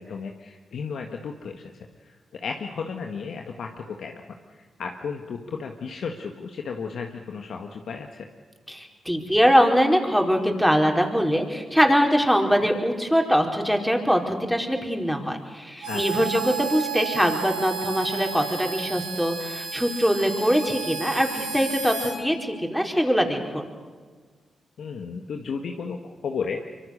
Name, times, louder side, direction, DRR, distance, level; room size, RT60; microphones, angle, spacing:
voice 1, 0.0-1.7 2.0-8.3 15.9-16.3 24.8-26.6, left 5 dB, 70° left, 3 dB, 1.7 m, -34 dB
voice 2, 8.7-23.7, equal, ahead, 2 dB, 4.8 m, -22 dB
Harmonica, 15.8-22.2, right 6 dB, 85° right, 6.4 m, -32 dB
24.5 x 24.5 x 6.8 m, 1.5 s
supercardioid pair, 45°, 0 cm